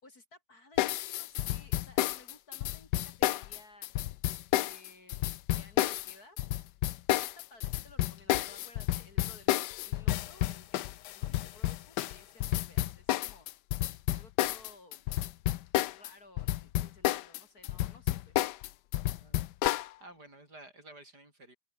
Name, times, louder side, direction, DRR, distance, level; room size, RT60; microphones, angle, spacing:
voice 1, 0.0-3.9 4.5-6.4 7.1-13.5 14.1-15.2 15.8-18.4, left 2 dB, 60° left, 6.5 m, -57 dB
sound 1, 0.8-16.1 16.4-19.9, left 15 dB, 85° left, 1.3 m, -30 dB
voice 2, 19.1-19.5 20.0-21.6, right 2 dB, 70° right, 8.8 m, -52 dB
omnidirectional pair, 1.8 m